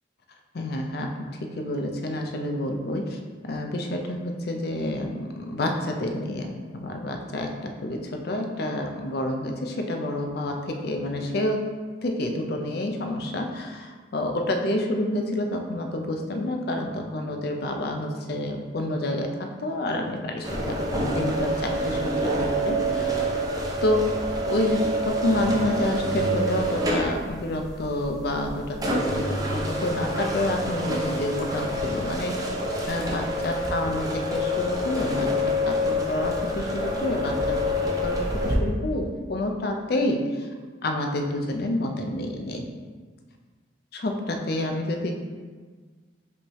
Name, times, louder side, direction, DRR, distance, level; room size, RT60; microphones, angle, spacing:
voice 1, 0.5-11.6 12.0-23.4 23.8-24.1 24.5-32.4 32.9-40.5 40.8-42.6 43.9-45.1, left 1 dB, 55° left, 3 dB, 0.5 m, -29 dB
sound 1, 20.4-38.6, equal, 20° right, 0.6 m, -27 dB
5.3 x 3.2 x 3.0 m, 1.5 s
head